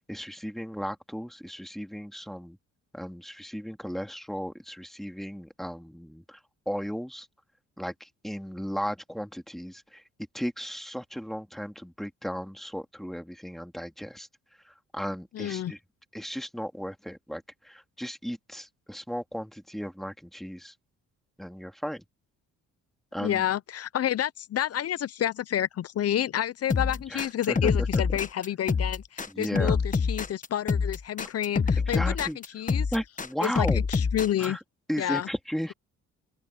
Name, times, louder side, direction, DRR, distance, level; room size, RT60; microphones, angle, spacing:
voice 1, 0.0-2.6 2.9-6.4 6.7-7.3 7.8-10.0 10.3-14.3 14.6-15.8 16.1-20.7 21.4-22.0 23.1-23.4 26.8-28.0 29.3-29.8 31.9-32.4 32.9-33.9 34.4-34.6 34.9-35.7, equal, ahead, 2.7 m, -35 dB
voice 2, 15.3-15.7 23.2-32.9 33.4-34.6 35.0-35.3, left 11 dB, 55° left, 0.7 m, -29 dB
sound 1, 26.7-34.5, left 5 dB, 25° left, 1.3 m, -26 dB
open air
cardioid pair, 90°, 30 cm